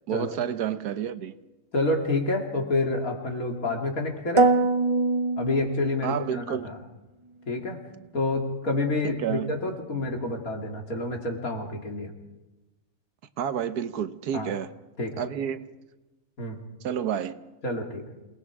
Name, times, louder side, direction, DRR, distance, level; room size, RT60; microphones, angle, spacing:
voice 1, 0.1-1.3 6.0-6.7 9.0-9.6 13.4-14.7 15.2-15.7 16.8-17.4, right 9 dB, 80° right, 1.4 m, -30 dB
voice 2, 1.7-4.5 5.4-6.8 7.5-7.8 8.1-12.1 14.3-14.5 15.0-15.2 16.4-16.6 17.6-18.0, left 2 dB, 60° left, 3.2 m, -28 dB
sound 1, 4.4-6.3, right 3 dB, 50° right, 0.3 m, -23 dB
27.5 x 19.5 x 4.8 m
omnidirectional pair, 1.7 m